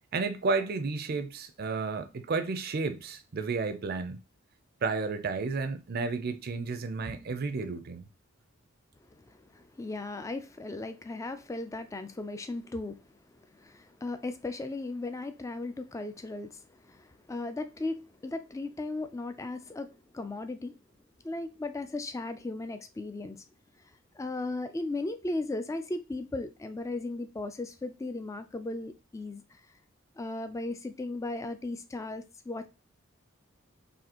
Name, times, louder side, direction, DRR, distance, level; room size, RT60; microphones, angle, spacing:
voice 1, 0.1-4.2 4.8-8.1, right 4 dB, 50° right, 0.5 m, -32 dB
voice 2, 9.1-13.1 13.3-20.8 21.2-23.4 24.2-29.6 30.2-32.7, left 2 dB, 15° left, 0.3 m, -36 dB
4.1 x 2.6 x 2.9 m
head